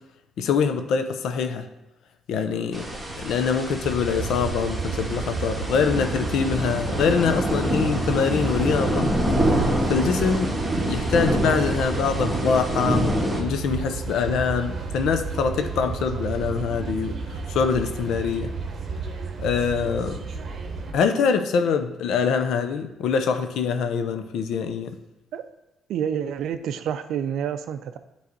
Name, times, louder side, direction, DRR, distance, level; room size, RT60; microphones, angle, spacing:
voice 1, 0.4-1.7 2.3-2.9 3.2-9.1 9.9-10.5 10.9-17.2 17.5-18.5 19.4-20.2 20.9-24.9, left 6 dB, 80° left, 7 dB, 0.7 m, -24 dB
sound 1, 2.7-13.4, right 1 dB, 15° right, 1.5 m, -26 dB
sound 2, 3.8-20.9, right 5 dB, 50° right, 0.9 m, -32 dB
voice 2, 25.9-28.0, right 8 dB, 80° right, 10 dB, 0.4 m, -28 dB
9.6 x 3.2 x 4.0 m, 0.95 s
cardioid pair, 90°, 0 cm